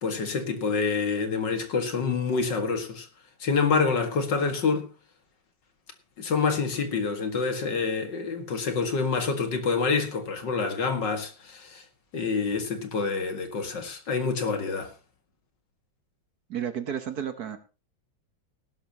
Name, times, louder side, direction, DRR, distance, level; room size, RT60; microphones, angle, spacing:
voice 1, 0.0-3.1 3.4-4.9 6.2-11.8 12.1-14.9, left 5 dB, 60° left, 2.5 m, -27 dB
voice 2, 16.5-17.6, right 8 dB, 55° right, 1.5 m, -32 dB
18.5 x 12.0 x 2.9 m
omnidirectional pair, 2.2 m